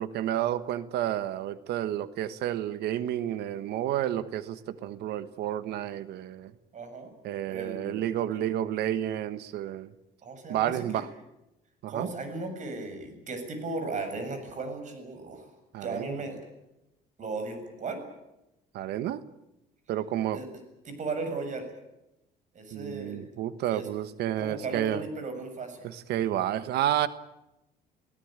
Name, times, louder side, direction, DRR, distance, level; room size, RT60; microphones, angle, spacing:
voice 1, 0.0-6.5 7.2-9.9 10.5-11.1 11.8-12.1 15.7-16.2 18.7-19.2 19.9-20.4 22.7-25.1 25.8-27.1, right 12 dB, 75° right, 14 dB, 1.3 m, -30 dB
voice 2, 6.7-7.1 7.5-8.0 8.3-8.4 10.2-11.0 11.9-15.5 15.8-16.4 17.2-18.0 20.3-20.5 20.9-21.7 22.5-23.3 23.7-23.9 24.4-25.9 26.1-26.4, right 3 dB, 45° right, 7 dB, 7.1 m, -36 dB
29.0 x 17.0 x 8.9 m, 0.92 s
cardioid pair, 110°, 17 cm